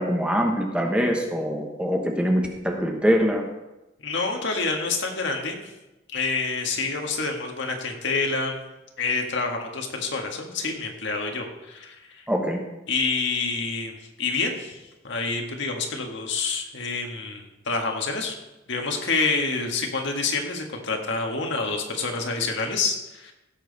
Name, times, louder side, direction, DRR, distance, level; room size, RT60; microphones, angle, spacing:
voice 1, 0.0-3.4 12.3-12.6, equal, 5° right, 2 dB, 1.2 m, -23 dB
voice 2, 4.0-5.7 6.1-8.6 9.0-12.2 12.9-18.3 18.7-23.3, left 4 dB, 65° left, 2 dB, 1.8 m, -27 dB
16.0 x 7.5 x 4.1 m, 0.99 s
head